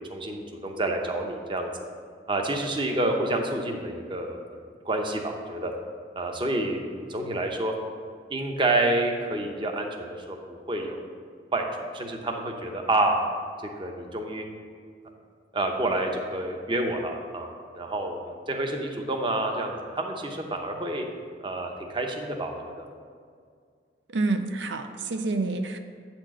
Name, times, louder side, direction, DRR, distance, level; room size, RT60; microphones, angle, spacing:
voice 1, 0.1-1.7 2.3-5.7 6.2-7.7 8.3-11.0 11.5-11.7 11.9-13.2 13.6-14.5 15.5-21.0 21.4-22.9, right 2 dB, 30° right, 3 dB, 0.7 m, -28 dB
voice 2, 24.1-25.8, right 3 dB, 90° right, 7 dB, 0.5 m, -28 dB
8.6 x 4.4 x 6.1 m, 2.1 s
head